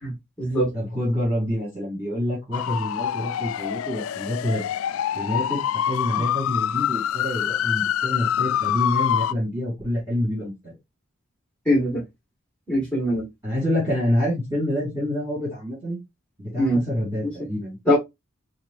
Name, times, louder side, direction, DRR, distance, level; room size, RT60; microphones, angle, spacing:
voice 1, 0.0-0.7 11.6-12.0 12.7-13.2 16.6-16.8 17.8-18.0, equal, 5° left, 1.8 m, -22 dB
voice 2, 0.7-4.7 5.1-10.7 13.4-16.0 16.4-17.8, left 1 dB, 15° right, 3.2 m, -27 dB
sound 1, 2.5-9.3, left 10 dB, 85° left, 0.3 m, -25 dB
5.9 x 2.6 x 2.6 m
head